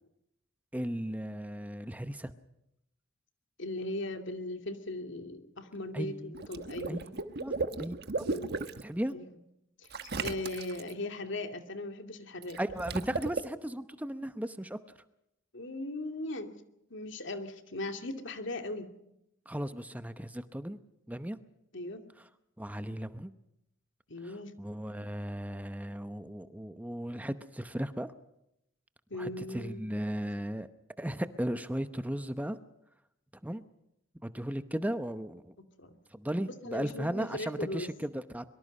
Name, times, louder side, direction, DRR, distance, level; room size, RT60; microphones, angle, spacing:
voice 1, 0.7-2.3 5.9-6.4 6.9-7.0 7.4-7.5 7.8-7.9 8.8-9.1 12.6-14.8 19.5-20.8 21.1-21.4 22.6-23.3 24.2-28.1 29.2-30.7 31.0-32.6 33.4-33.6 34.2-35.5 36.1-38.4, right 1 dB, 10° right, 11 dB, 0.8 m, -36 dB
voice 2, 3.6-7.0 8.3-8.5 9.1-9.3 10.0-12.6 15.5-16.6 16.9-18.9 21.7-22.0 24.1-24.5 29.1-29.8 35.8-36.0 36.6-37.9, left 2 dB, 65° left, 6 dB, 2.5 m, -38 dB
Water / Liquid, 6.3-8.8 9.9-10.9 12.4-13.4, right 3 dB, 55° right, 1.3 m, -35 dB
24.0 x 23.5 x 5.4 m, 0.81 s
head